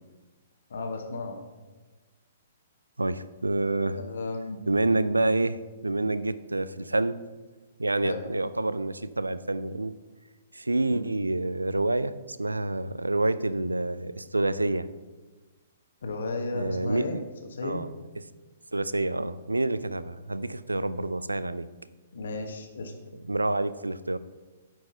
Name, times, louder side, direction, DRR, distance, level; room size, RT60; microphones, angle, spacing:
voice 1, 0.7-1.4 4.0-4.6 8.0-8.2 10.9-11.0 16.0-17.2 17.5-17.8 22.1-22.9, left 2 dB, 65° left, 4 dB, 1.3 m, -34 dB
voice 2, 3.0-4.0 4.7-7.2 7.8-10.0 10.5-14.9 16.5-17.2 17.6-17.9 18.2-18.3 18.7-21.7 23.1-24.2, right 2 dB, 85° right, 15 dB, 0.4 m, -28 dB
9.4 x 4.7 x 5.3 m, 1.2 s
figure-of-eight pair, 120°, 0 cm